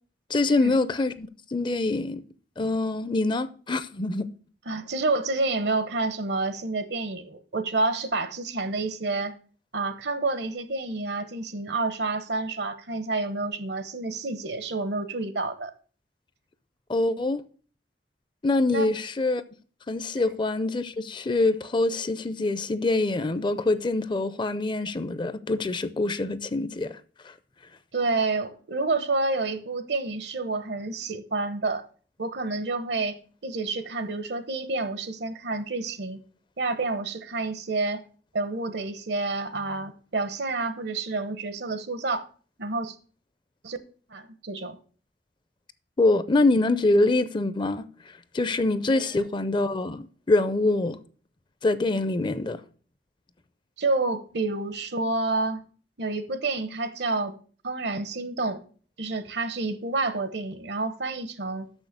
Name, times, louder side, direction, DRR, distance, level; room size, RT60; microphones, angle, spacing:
voice 1, 0.3-2.2 2.6-4.3 16.9-17.4 18.4-19.4 19.9-27.0 27.2-27.3 46.0-47.9 48.3-51.0 51.6-52.6, left 2 dB, 25° left, 0.5 m, -25 dB
voice 2, 4.7-9.4 9.7-15.7 18.7-18.9 27.9-31.9 32.2-36.2 36.6-38.0 38.3-42.3 42.6-43.0 43.6-43.8 44.1-44.8 48.9-49.0 53.8-55.6 56.0-57.3 57.6-58.6 59.0-61.7, right 3 dB, 75° right, 0.9 m, -29 dB
6.4 x 6.3 x 6.5 m
head